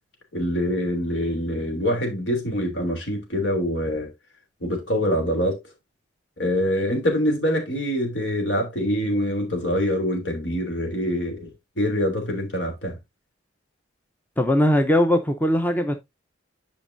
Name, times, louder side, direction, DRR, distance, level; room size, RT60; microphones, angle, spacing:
voice 1, 0.3-4.1 4.6-5.6 6.4-11.5 11.8-13.0, equal, 65° left, 3.1 m, -25 dB
voice 2, 14.4-15.9, left 1 dB, 10° left, 0.7 m, -20 dB
10.5 x 5.2 x 2.6 m
head